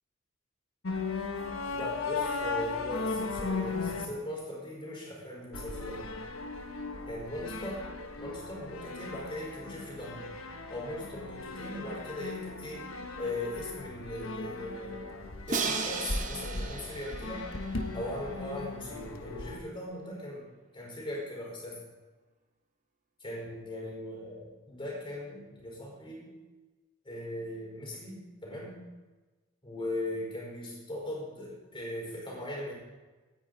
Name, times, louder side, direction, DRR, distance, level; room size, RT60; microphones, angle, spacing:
sound 1, 0.8-4.0 5.5-19.6, left 3 dB, 70° left, 1.3 m, -37 dB
voice 1, 1.7-6.1 7.1-7.9 8.2-10.3 10.7-12.9 13.2-15.2 15.5-17.5 17.9-20.5 20.7-21.8 23.2-26.3 27.0-28.8 29.6-32.8, left 1 dB, 25° left, -3 dB, 4.5 m, -39 dB
Crash cymbal, 15.5-18.4, right 5 dB, 40° right, 1.1 m, -36 dB
17.0 x 9.7 x 4.0 m, 1.2 s
head